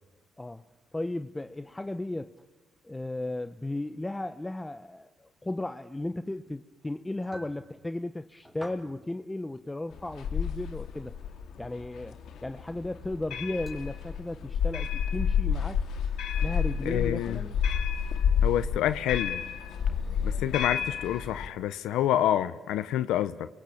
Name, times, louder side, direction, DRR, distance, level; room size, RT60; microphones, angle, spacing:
voice 1, 0.9-2.3 2.8-11.1 11.6-12.2 12.4-15.8 16.4-17.6, left 2 dB, 15° left, 10 dB, 0.8 m, -35 dB
sound 1, 7.1-7.6 8.4-8.9 9.5-9.6 10.5-10.6 12.5-12.7 13.7-13.8, equal, 5° right, 4.2 m, -47 dB
sound 2, 9.9-21.5, left 7 dB, 75° left, 2.5 m, -30 dB
voice 2, 16.8-17.4 18.4-19.4 20.2-23.5, left 12 dB, 90° left, 12 dB, 0.8 m, -28 dB
28.5 x 22.5 x 8.7 m, 1.2 s
cardioid pair, 90°, 0 cm